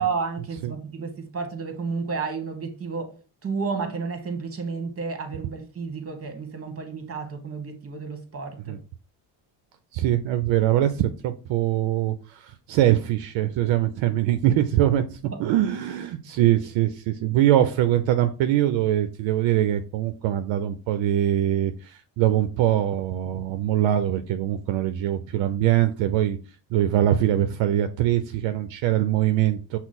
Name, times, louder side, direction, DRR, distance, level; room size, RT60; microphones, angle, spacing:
voice 1, 0.0-8.8 15.3-15.5, right 5 dB, 30° right, 1.2 m, -31 dB
voice 2, 9.9-15.0 15.4-26.4 26.7-29.8, right 12 dB, 70° right, 0.6 m, -23 dB
5.9 x 2.0 x 4.0 m
supercardioid pair, 75°, 47 cm